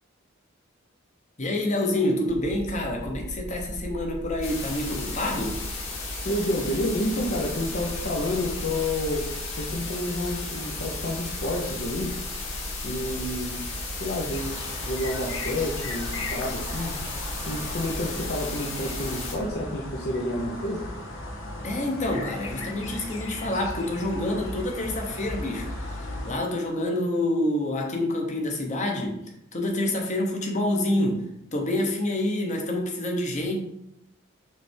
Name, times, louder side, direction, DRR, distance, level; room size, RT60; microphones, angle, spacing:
voice 1, 1.4-5.6 21.6-29.2 29.5-31.2 31.5-33.6, left 1 dB, 35° left, 1 dB, 1.1 m, -27 dB
sound 1, 2.3-19.5, right 1 dB, 40° right, 0.4 m, -38 dB
sound 2, 4.4-19.4, left 4 dB, 90° left, 1.6 m, -36 dB
voice 2, 6.2-9.2 9.6-12.1 12.8-13.6 14.0-17.0 17.5-20.8, left 1 dB, 55° left, -2 dB, 0.8 m, -29 dB
sound 3, 14.3-26.3, left 1 dB, 70° left, 1.1 m, -37 dB
6.1 x 3.4 x 4.5 m, 0.81 s
head